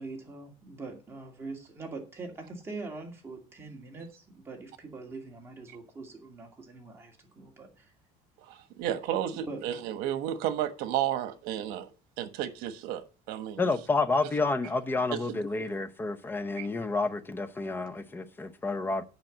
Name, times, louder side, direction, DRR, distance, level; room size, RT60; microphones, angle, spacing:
voice 1, 0.0-7.9 9.3-9.6, right 3 dB, 15° right, 2.5 m, -43 dB
voice 2, 8.5-11.9 12.2-13.7 15.1-15.4 16.6-16.7, right 11 dB, 75° right, 1.2 m, -32 dB
voice 3, 13.6-19.0, left 3 dB, 15° left, 0.8 m, -30 dB
9.0 x 5.8 x 7.4 m
cardioid pair, 160°, 15 cm